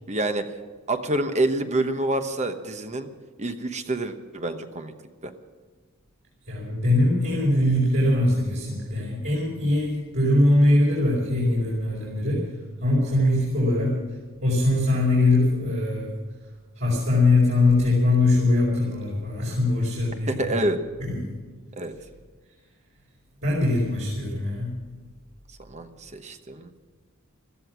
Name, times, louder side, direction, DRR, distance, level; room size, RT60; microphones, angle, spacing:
voice 1, 0.1-0.5 0.9-3.1 3.4-4.9 5.2-5.3 20.3-20.8 21.8-21.9 25.7-26.7, right 1 dB, 30° right, 8 dB, 1.0 m, -27 dB
voice 2, 6.5-12.5 12.8-14.0 14.4-16.1 16.7-20.5 21.0-21.4 23.4-24.7, left 2 dB, 55° right, -6 dB, 4.8 m, -22 dB
16.5 x 14.0 x 6.2 m, 1.5 s
head